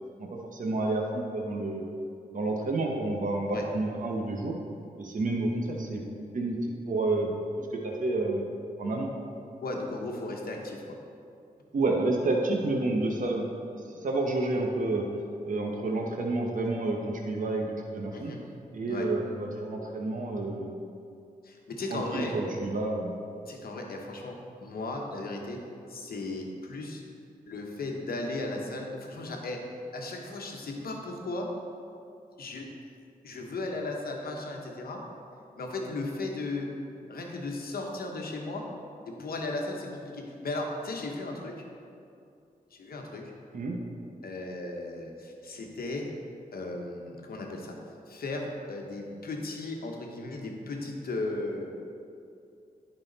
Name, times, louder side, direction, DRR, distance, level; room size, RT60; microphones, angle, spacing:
voice 1, 0.2-1.8 2.3-4.6 5.0-6.6 6.9-7.3 7.6-8.4 8.8-9.1 11.7-13.5 14.0-15.1 15.4-17.6 17.9-18.3 18.7-20.8 21.9-23.1 43.5-43.8, right 2 dB, 55° right, 1 dB, 0.9 m, -29 dB
voice 2, 9.6-11.0 18.1-18.4 18.9-19.1 21.4-22.4 23.5-25.6 25.9-27.0 27.5-29.6 29.9-31.5 32.4-32.7 33.2-35.0 35.5-36.7 37.1-38.7 39.1-41.5 42.7-43.2 44.2-46.1 46.5-47.8 48.1-51.8, left 2 dB, 70° left, 1 dB, 1.1 m, -36 dB
10.5 x 4.0 x 4.0 m, 2.5 s
cardioid pair, 60°, 16 cm